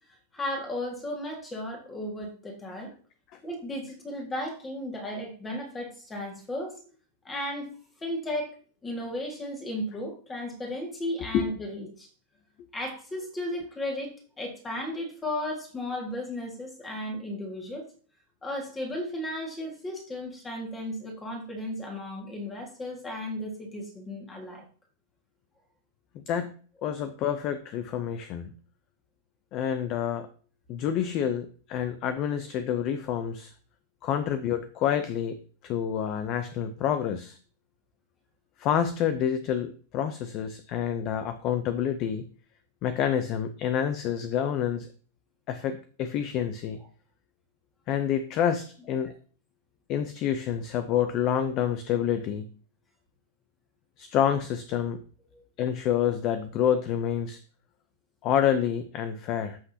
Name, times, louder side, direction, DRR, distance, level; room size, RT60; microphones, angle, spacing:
voice 1, 0.3-2.9 3.4-6.8 7.2-7.7 8.0-8.6 8.8-12.1 12.7-17.9 18.4-24.7 49.0-49.1 55.3-55.4, left 1 dB, 10° left, 1 dB, 1.8 m, -35 dB
voice 2, 26.8-28.5 29.5-30.3 30.7-33.5 34.0-37.4 38.6-42.2 42.8-44.9 45.5-46.8 47.9-49.1 49.9-52.5 54.0-55.0 55.6-57.4 58.2-59.6, left 9 dB, 25° left, 10 dB, 0.6 m, -28 dB
13.5 x 6.1 x 2.8 m, 0.42 s
supercardioid pair, 175°, 0 cm